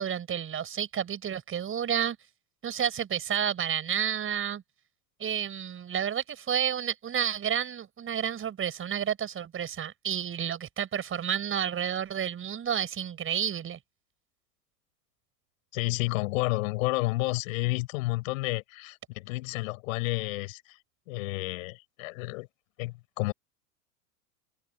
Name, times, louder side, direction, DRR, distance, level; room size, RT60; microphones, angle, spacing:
voice 1, 0.0-2.2 2.6-4.6 5.2-13.8, right 9 dB, 25° right, 6.9 m, -30 dB
voice 2, 15.7-20.8 21.1-22.5 22.8-23.3, left 21 dB, 55° left, 7.7 m, -31 dB
hypercardioid pair, 100°, 47 cm